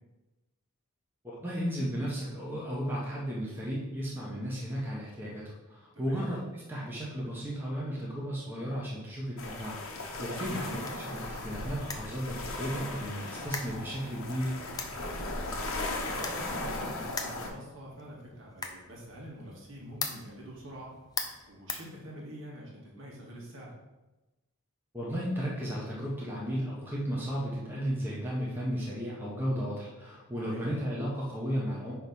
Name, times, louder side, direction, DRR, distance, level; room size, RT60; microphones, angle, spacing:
voice 1, 1.2-14.6 24.9-31.9, equal, 10° right, -6 dB, 1.2 m, -34 dB
voice 2, 5.9-6.3 10.4-10.6 15.6-20.9 21.5-23.7 30.4-30.7, right 1 dB, 60° right, -4 dB, 2.1 m, -46 dB
sound 1, 9.4-17.5, left 2 dB, 70° left, 1.1 m, -37 dB
sound 2, 10.7-22.6, left 4 dB, 15° left, 0.5 m, -43 dB
8.9 x 3.2 x 5.5 m, 1.1 s
head